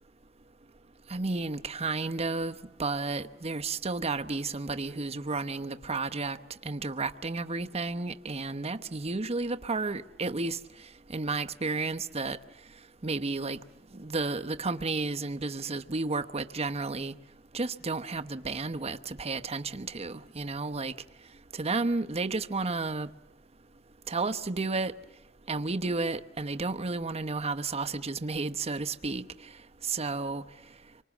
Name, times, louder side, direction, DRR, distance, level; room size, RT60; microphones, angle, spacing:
voice 1, 1.1-6.4 6.6-10.6 11.1-12.4 13.0-13.6 13.9-17.1 17.5-20.9 21.5-23.1 24.1-24.9 25.5-29.2 29.8-30.4, right 3 dB, 30° right, 0.9 m, -32 dB
25.5 x 24.5 x 7.2 m
head